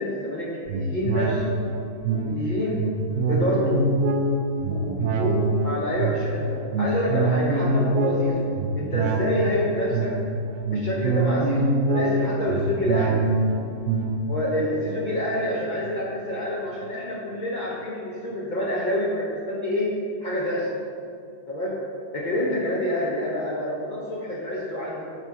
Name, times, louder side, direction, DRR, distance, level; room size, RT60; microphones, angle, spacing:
voice 1, 0.0-1.6 2.1-2.8 3.3-3.8 4.7-8.5 8.7-10.1 10.7-13.2 14.3-19.9 20.2-20.7 21.5-21.8 22.1-25.1, left 1 dB, 55° left, -5 dB, 0.5 m, -27 dB
sound 1, 0.7-16.4 16.8-16.9, right 2 dB, 75° right, 0.6 m, -25 dB
5.9 x 4.1 x 4.5 m, 2.4 s
omnidirectional pair, 1.8 m